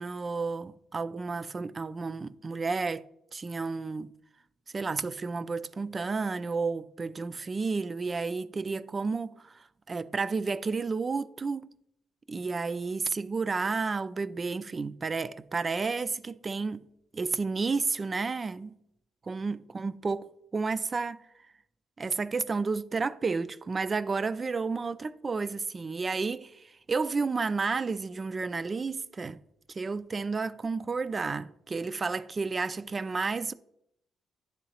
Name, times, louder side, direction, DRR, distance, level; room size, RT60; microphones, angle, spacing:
voice 1, 0.0-3.0 3.3-4.1 4.7-9.5 9.9-11.7 12.3-16.8 17.1-18.7 19.3-21.2 22.0-29.4 29.7-33.5, right 4 dB, 35° right, 0.3 m, -31 dB
10.5 x 3.8 x 2.8 m
cardioid pair, 90°, 0 cm